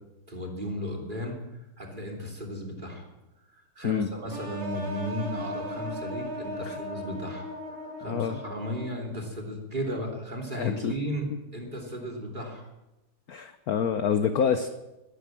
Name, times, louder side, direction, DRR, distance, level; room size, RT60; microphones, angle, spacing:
voice 1, 0.3-1.4 1.8-3.1 3.5-7.5 8.0-12.7, equal, 20° right, 1 dB, 3.0 m, -35 dB
sound 1, 4.3-9.2, equal, 70° right, 4.7 m, -37 dB
voice 2, 8.1-8.4 10.5-10.9 13.3-14.7, left 7 dB, 60° left, 9 dB, 1.0 m, -27 dB
13.0 x 12.5 x 7.6 m, 1.0 s
omnidirectional pair, 2.3 m